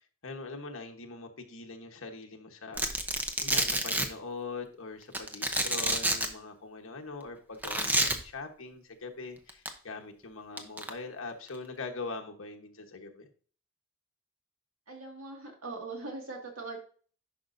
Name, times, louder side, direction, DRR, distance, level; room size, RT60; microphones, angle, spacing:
voice 1, 0.2-2.8 3.4-13.3, left 3 dB, 70° left, 3 dB, 1.2 m, -42 dB
Domestic sounds home sounds, 2.8-4.1 5.1-6.3 7.6-8.1 9.5-9.7 10.6-10.9, right 1 dB, 10° right, 0.7 m, -28 dB
voice 2, 14.9-16.8, right 3 dB, 75° right, 1 dB, 2.1 m, -41 dB
10.5 x 5.3 x 2.6 m, 0.43 s
head